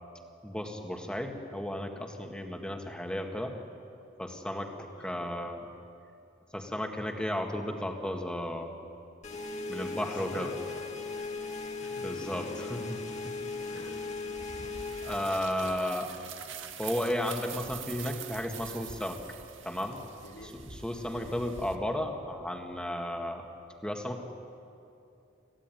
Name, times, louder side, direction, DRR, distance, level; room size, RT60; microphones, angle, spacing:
voice 1, 0.4-3.5 4.2-5.7 6.5-8.7 9.7-10.5 12.0-13.0 13.2-13.3 13.8-13.9 15.0-16.1 16.8-19.2 19.6-20.0 20.6-23.4 23.8-24.3, left 1 dB, 5° left, 3 dB, 1.9 m, -34 dB
voice 2, 4.5-5.1 9.7-11.4 11.8-12.8 13.6-14.0 15.6-15.8 20.2-20.6 21.1-21.4, left 1 dB, 85° left, -1 dB, 5.4 m, -50 dB
sound 1, 9.2-15.4, left 4 dB, 35° left, 2.1 m, -38 dB
sound 2, 14.4-21.8, right 7 dB, 75° right, 1.8 m, -45 dB
27.5 x 15.5 x 9.3 m, 2.7 s
head